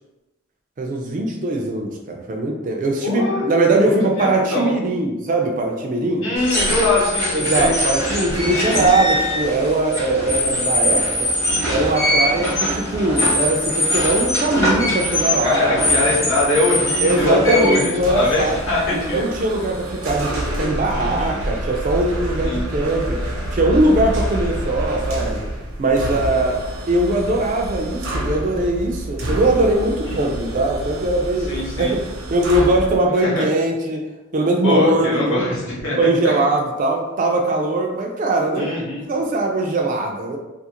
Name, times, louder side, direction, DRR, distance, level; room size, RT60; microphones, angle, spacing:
voice 1, 0.8-6.3 7.3-11.3 11.7-15.7 17.0-18.6 19.1-23.2 23.5-25.4 25.8-26.6 26.9-34.0 34.3-35.5 36.0-38.7 39.1-40.4, right 2 dB, 35° right, 1 dB, 0.3 m, -20 dB
voice 2, 3.0-3.5 3.9-4.7 6.2-7.7 8.6-8.9 15.4-19.2 20.9-21.4 22.4-22.6 30.1-30.3 31.5-32.0 33.2-33.5 34.6-36.0 36.2-36.4 38.5-39.0, left 2 dB, 65° left, -6 dB, 0.9 m, -22 dB
sound 1, 6.3-19.1, left 1 dB, 15° left, 0.7 m, -22 dB
sound 2, 18.0-33.0, right 1 dB, 80° right, 0.6 m, -28 dB
2.4 x 2.4 x 2.8 m, 1.0 s
head